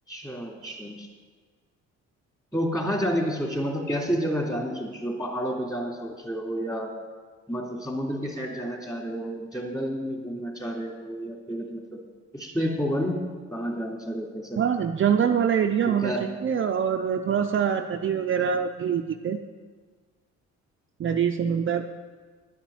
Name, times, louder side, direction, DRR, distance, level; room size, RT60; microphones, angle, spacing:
voice 1, 0.1-1.1 2.5-6.9 7.5-12.0 12.3-13.2 13.5-14.6 15.9-16.2, equal, 10° left, 0 dB, 3.0 m, -30 dB
voice 2, 14.6-19.4 21.0-21.9, right 7 dB, 40° right, 4 dB, 0.6 m, -24 dB
11.0 x 7.3 x 7.1 m, 1.5 s
cardioid pair, 90°, 30 cm